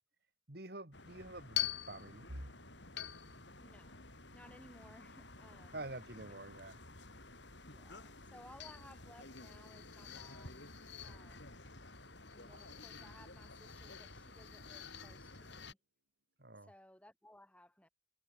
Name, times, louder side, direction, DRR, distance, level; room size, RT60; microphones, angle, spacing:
voice 1, 0.5-2.3 5.7-6.8 16.4-16.7, right 2 dB, 50° right, 2.5 m, -48 dB
sound 1, 0.9-15.7, left 8 dB, 65° left, 7.7 m, -47 dB
voice 2, 3.6-5.9 7.6-10.7 11.0-11.6 12.3-15.8 16.6-17.9, left 1 dB, 5° left, 6.0 m, -60 dB
sound 2, 16.2-16.7, equal, 90° right, 7.8 m, -60 dB
head